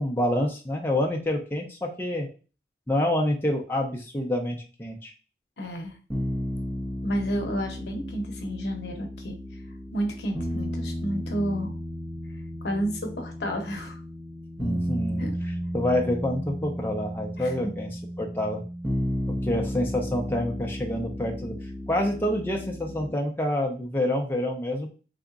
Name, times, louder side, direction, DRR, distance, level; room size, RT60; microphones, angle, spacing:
voice 1, 0.0-2.3 2.9-5.1 14.6-15.3 15.7-17.9 18.2-18.6 19.4-21.5 21.9-24.9, left 1 dB, 10° left, 0 dB, 0.5 m, -27 dB
voice 2, 5.6-6.0 7.0-9.4 9.9-11.7 12.6-14.0 15.2-15.4 17.4-17.7, equal, 70° left, 3 dB, 0.7 m, -31 dB
sound 1, 6.1-23.1, equal, 10° right, 0.8 m, -33 dB
3.5 x 2.8 x 2.5 m, 0.34 s
head